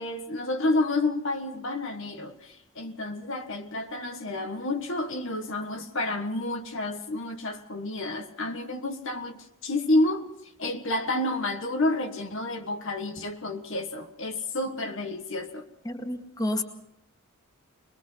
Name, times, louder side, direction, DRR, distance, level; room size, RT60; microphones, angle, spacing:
voice 1, 0.0-10.3 10.6-15.6, left 2 dB, 60° left, 1.6 m, -30 dB
voice 2, 15.9-16.6, left 1 dB, 15° left, 2.0 m, -30 dB
22.5 x 22.0 x 5.6 m
head